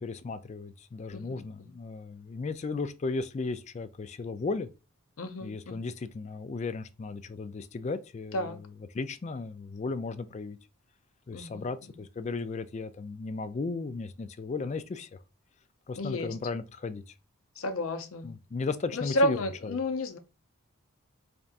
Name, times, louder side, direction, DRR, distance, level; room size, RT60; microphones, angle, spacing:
voice 1, 0.0-4.7 5.4-10.6 11.3-15.2 15.9-17.0 18.2-19.4 19.6-19.8, left 4 dB, 30° left, 0.3 m, -35 dB
voice 2, 1.1-1.5 5.2-5.8 8.3-8.6 11.3-11.7 16.0-16.3 17.6-18.3 18.9-20.2, left 1 dB, 75° left, 0.7 m, -31 dB
4.1 x 3.4 x 2.5 m
head